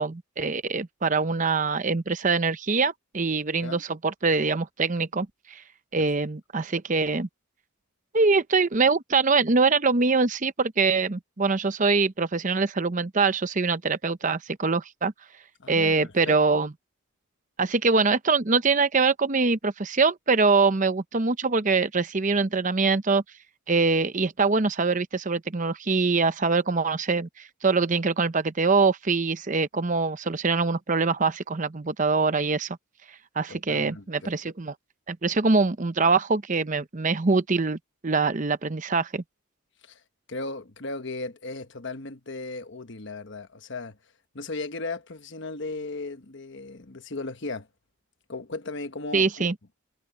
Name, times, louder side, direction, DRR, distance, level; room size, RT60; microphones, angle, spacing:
voice 1, 0.0-5.6 5.9-7.3 8.1-15.1 15.7-16.7 17.6-23.2 23.7-32.8 33.4-34.7 35.1-39.2 49.1-49.5, right 4 dB, 35° right, 0.7 m, -24 dB
voice 2, 15.6-16.4 33.5-34.3 39.8-40.0 40.3-44.0 44.3-47.7 48.3-49.5, left 3 dB, 55° left, 1.2 m, -36 dB
head